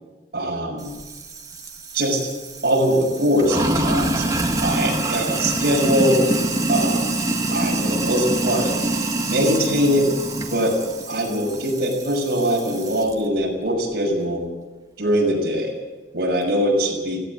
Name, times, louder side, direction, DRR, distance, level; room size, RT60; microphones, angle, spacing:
voice 1, 0.3-0.9 1.9-2.2 2.6-4.2 4.6-6.2 6.7-7.1 7.5-8.7 9.3-10.1 10.5-10.7 11.1-14.4 15.0-15.7 16.1-17.2, equal, 60° right, 0 dB, 6.5 m, -22 dB
Sink (filling or washing), 0.8-13.1, right 2 dB, 20° right, 1.9 m, -25 dB
17.5 x 16.5 x 9.6 m, 1.2 s
head